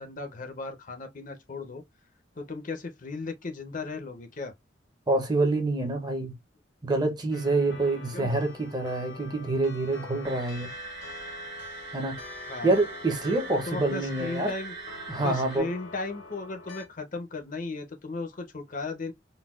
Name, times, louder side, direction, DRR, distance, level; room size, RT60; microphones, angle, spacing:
voice 1, 0.0-1.8 2.4-4.5 8.1-8.3 12.5-12.8 13.6-14.7 15.2-19.1, left 3 dB, 40° left, 0.7 m, -36 dB
voice 2, 5.1-6.4 6.8-10.7 11.9-12.2 12.6-14.5 15.1-15.7, right 2 dB, 20° right, 0.7 m, -26 dB
sound 1, 7.3-16.9, left 3 dB, 75° left, 1.2 m, -45 dB
sound 2, 10.2-15.6, right 5 dB, 60° right, 1.0 m, -42 dB
3.9 x 2.3 x 2.3 m
head